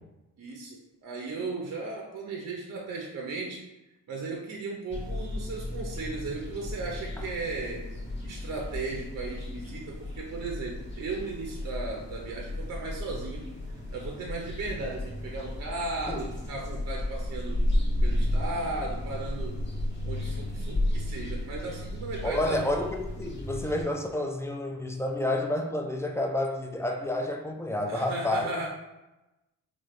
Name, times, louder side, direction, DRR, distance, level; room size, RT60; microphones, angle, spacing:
voice 1, 0.4-3.6 4.1-7.9 8.2-13.5 13.9-17.7 18.0-19.7 20.0-22.7 27.9-28.7, right 3 dB, 45° right, 0 dB, 0.6 m, -36 dB
sound 1, 4.9-23.8, left 1 dB, 30° left, 1.2 m, -33 dB
voice 2, 22.2-28.5, left 1 dB, 5° left, 2 dB, 0.4 m, -30 dB
3.4 x 2.0 x 3.1 m, 1.0 s
supercardioid pair, 50°, 39 cm